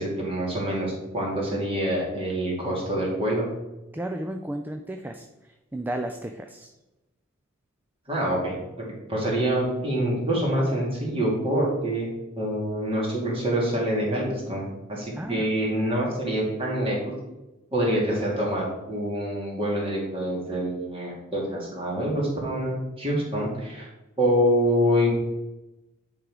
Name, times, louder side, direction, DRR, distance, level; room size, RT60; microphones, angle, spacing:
voice 1, 0.0-3.4 8.1-12.1 12.4-17.1 17.7-23.9 24.2-25.1, equal, 25° right, -3 dB, 2.3 m, -26 dB
voice 2, 3.9-6.7 15.2-15.5, right 1 dB, 10° right, 5 dB, 0.3 m, -33 dB
9.7 x 3.8 x 4.7 m, 1.0 s
head